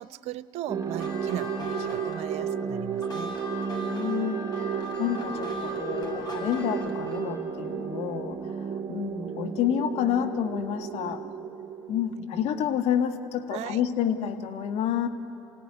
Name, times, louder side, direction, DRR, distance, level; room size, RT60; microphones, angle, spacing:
voice 1, 0.0-3.4 11.2-11.3 12.2-12.3 13.5-13.8, right 12 dB, 65° right, 16 dB, 0.7 m, -37 dB
sound 1, 0.7-12.5, right 7 dB, 30° right, 1.4 m, -33 dB
sound 2, 0.8-7.4, left 1 dB, 35° left, 7.1 m, -40 dB
voice 2, 3.8-11.2 11.9-15.1, left 9 dB, 65° left, 6 dB, 1.8 m, -29 dB
27.5 x 17.0 x 9.7 m, 2.8 s
hypercardioid pair, 70°, 12 cm